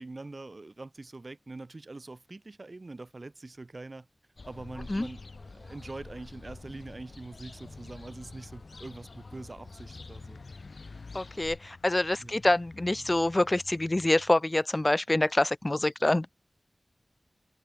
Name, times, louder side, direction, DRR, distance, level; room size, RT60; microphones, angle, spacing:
voice 1, 0.0-4.1 4.5-5.2 5.5-10.4 12.2-12.4, right 2 dB, 50° right, 3.5 m, -44 dB
sound 1, 4.4-11.6, left 3 dB, 65° left, 6.3 m, -47 dB
sound 2, 9.8-14.4, left 4 dB, 85° left, 5.5 m, -50 dB
voice 2, 11.1-16.3, left 1 dB, 30° left, 0.5 m, -26 dB
wide cardioid pair, 75°, 0 cm